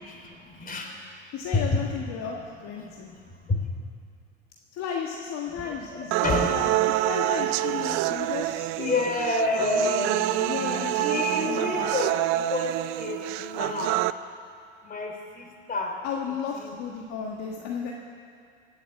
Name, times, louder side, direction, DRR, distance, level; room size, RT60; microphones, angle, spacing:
voice 1, 0.1-0.9 3.5-3.6 5.6-6.7 8.8-10.2 11.0-12.2 12.5-14.0 14.8-15.9 16.5-16.7, left 2 dB, 25° left, 2 dB, 3.3 m, -29 dB
voice 2, 1.3-3.1 4.7-6.7 7.0-9.1 9.6-11.9 16.0-17.9, left 6 dB, 50° left, 0 dB, 1.6 m, -34 dB
sound 1, 6.1-14.1, right 16 dB, 55° right, 0.5 m, -27 dB
16.5 x 8.3 x 8.6 m, 2.4 s
hypercardioid pair, 80°, 34 cm